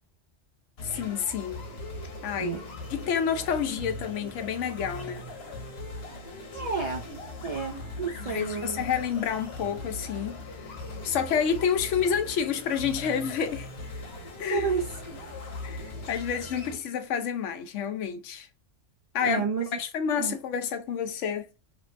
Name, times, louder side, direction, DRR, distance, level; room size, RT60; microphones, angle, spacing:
voice 1, 0.8-1.6 2.2-2.6 2.9-5.2 8.2-10.7 11.0-13.7 14.4-14.7 15.6-18.5 19.1-19.4 19.8-21.5, left 7 dB, 80° left, 0.9 m, -29 dB
sound 1, 0.8-16.8, left 1 dB, 60° left, 1.1 m, -40 dB
voice 2, 6.5-7.0 7.4-8.8 14.5-15.0 19.2-19.7 20.2-20.3, right 5 dB, 70° right, 0.3 m, -30 dB
3.2 x 2.1 x 2.4 m
omnidirectional pair, 1.2 m